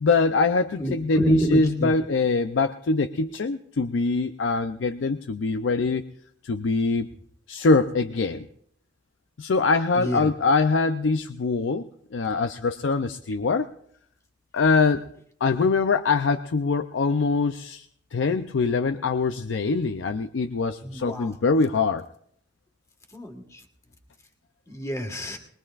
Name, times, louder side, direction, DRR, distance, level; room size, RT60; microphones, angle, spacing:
voice 1, 0.0-6.0 6.4-7.1 7.5-8.5 9.4-13.7 14.5-15.1 15.4-17.9 18.1-22.1, left 4 dB, 90° left, 8 dB, 0.5 m, -23 dB
voice 2, 0.8-1.9 10.0-10.3 20.8-21.3 23.1-23.4 24.7-25.4, right 1 dB, 15° left, 3 dB, 1.5 m, -27 dB
22.0 x 20.0 x 2.4 m, 0.69 s
head